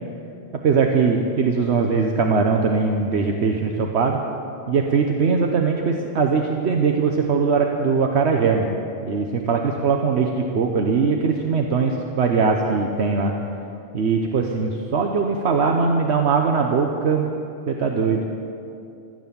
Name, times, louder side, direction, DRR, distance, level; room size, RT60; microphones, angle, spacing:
voice 1, 0.6-4.2 4.7-8.8 9.0-13.3 13.9-17.3 17.7-18.2, right 5 dB, 80° right, 3 dB, 1.2 m, -21 dB
15.5 x 12.5 x 7.1 m, 2.6 s
omnidirectional pair, 1.1 m